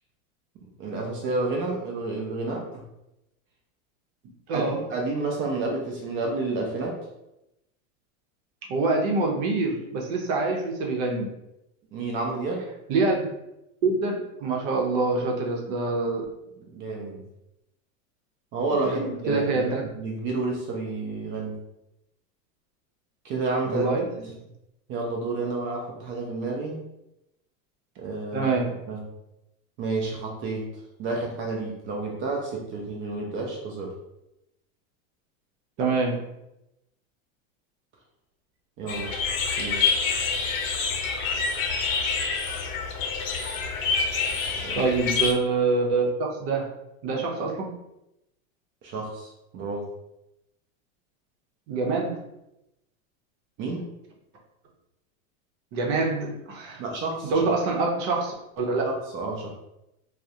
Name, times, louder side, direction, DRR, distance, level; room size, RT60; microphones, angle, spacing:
voice 1, 0.6-2.8 4.5-7.0 11.9-12.7 16.6-17.3 18.5-21.6 23.2-23.9 24.2-24.3 24.9-26.8 28.0-28.5 28.9-29.1 29.8-30.7 31.0-33.9 38.8-39.1 39.6-39.8 44.6-44.8 48.8-49.9 53.6-53.9 56.8-57.5 58.8-59.5, right 3 dB, 30° right, -1 dB, 0.4 m, -30 dB
voice 2, 4.5-4.8 8.7-11.3 12.9-13.2 13.8-16.2 18.7-19.8 23.7-24.1 28.3-28.8 35.8-36.2 44.7-46.7 47.0-47.7 51.7-52.2 55.7-56.8 57.2-58.8, right 3 dB, 55° right, 0 dB, 0.7 m, -25 dB
sound 1, 38.9-45.3, left 5 dB, 75° left, 0.6 m, -27 dB
2.2 x 2.0 x 2.7 m, 0.88 s
supercardioid pair, 120°, 41 cm